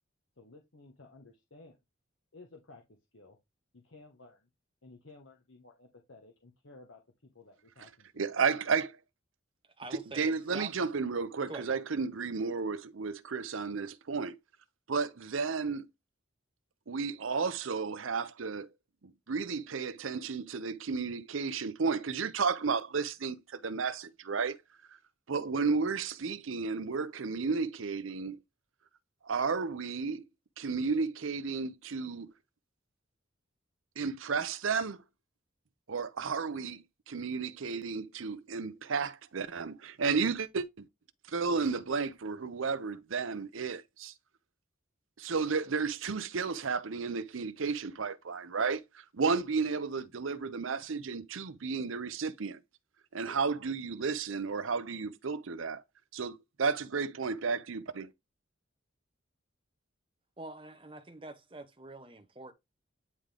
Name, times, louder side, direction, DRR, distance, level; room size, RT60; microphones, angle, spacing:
voice 1, 0.4-1.8 2.3-3.4 3.7-4.5 4.8-8.3, left 2 dB, 70° left, 1.2 m, -55 dB
voice 2, 8.2-9.0 9.9-14.3 14.9-15.9 16.9-18.7 19.0-24.6 25.3-28.4 29.2-30.2 30.6-32.3 34.0-35.0 35.9-40.8 41.3-44.1 45.2-52.6 53.1-55.8 56.1-58.1, right 5 dB, 80° right, 0.7 m, -33 dB
voice 3, 9.8-10.7 11.5-11.8 60.4-62.5, right 2 dB, 25° right, 0.9 m, -45 dB
9.7 x 3.8 x 3.4 m
head